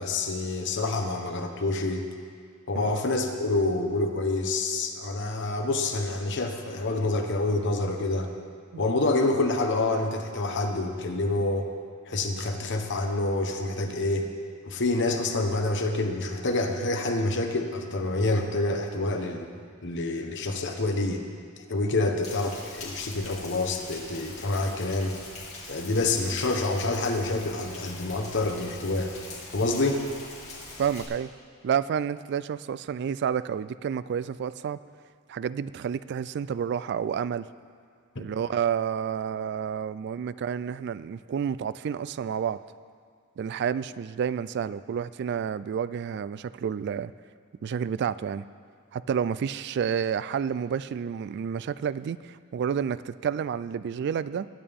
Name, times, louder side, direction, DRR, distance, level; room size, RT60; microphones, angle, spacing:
voice 1, 0.0-2.0 2.7-8.3 8.8-11.7 12.1-14.3 14.6-19.5 19.8-21.2 21.7-25.1 25.7-29.1 29.5-30.0, left 2 dB, 60° left, 4 dB, 1.2 m, -27 dB
Rain, 22.2-31.0, left 3 dB, 35° left, 2.7 m, -42 dB
voice 2, 30.8-31.3 31.6-34.8 35.3-37.5 38.2-42.6 43.4-47.1 47.6-48.5 48.9-54.5, right 7 dB, 55° right, 16 dB, 0.3 m, -30 dB
21.0 x 8.7 x 3.6 m, 2.2 s
head